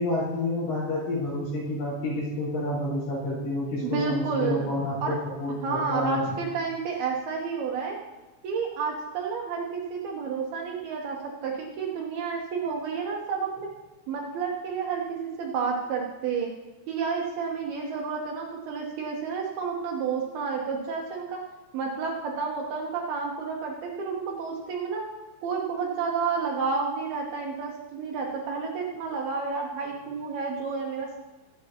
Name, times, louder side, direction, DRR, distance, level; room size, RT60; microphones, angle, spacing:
voice 1, 0.0-6.3, left 1 dB, 70° left, -7 dB, 6.8 m, -29 dB
voice 2, 3.8-4.7 5.0-5.1 5.6-8.0 8.4-13.7 14.1-16.5 16.9-21.4 21.7-25.0 25.4-31.2, right 5 dB, 75° right, -1 dB, 2.4 m, -30 dB
23.0 x 8.1 x 2.9 m, 1.2 s
omnidirectional pair, 5.5 m